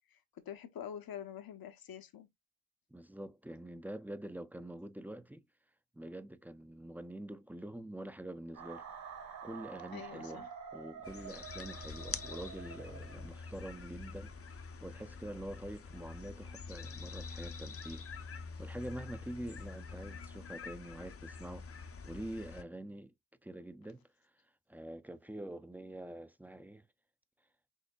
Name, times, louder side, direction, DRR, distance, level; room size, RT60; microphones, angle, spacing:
voice 1, 0.1-2.3 9.9-10.5, left 9 dB, 75° left, 1.0 m, -46 dB
voice 2, 2.9-5.4 5.9-8.9 9.4-18.1 18.6-23.1 23.4-24.1 24.7-26.8, right 1 dB, 5° right, 0.5 m, -46 dB
sound 1, 8.5-13.5, right 7 dB, 70° right, 3.7 m, -49 dB
sound 2, 11.0-22.6, left 5 dB, 40° left, 0.7 m, -46 dB
6.4 x 2.7 x 2.3 m
cardioid pair, 75°, 36 cm